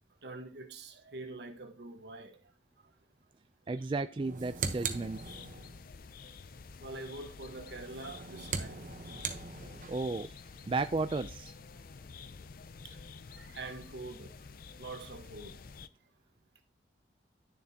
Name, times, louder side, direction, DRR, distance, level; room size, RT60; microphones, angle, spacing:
voice 1, 0.2-2.3 6.8-8.8 13.4-14.3 14.8-15.6, right 2 dB, 65° right, 1.3 m, -44 dB
voice 2, 3.7-5.2 9.9-10.3 10.7-11.5, right 3 dB, 30° right, 0.3 m, -33 dB
sound 1, 4.1-5.8 7.8-10.1, right 5 dB, 45° right, 0.9 m, -39 dB
sound 2, 4.8-15.9, left 5 dB, 50° left, 0.4 m, -49 dB
11.0 x 6.9 x 2.8 m
head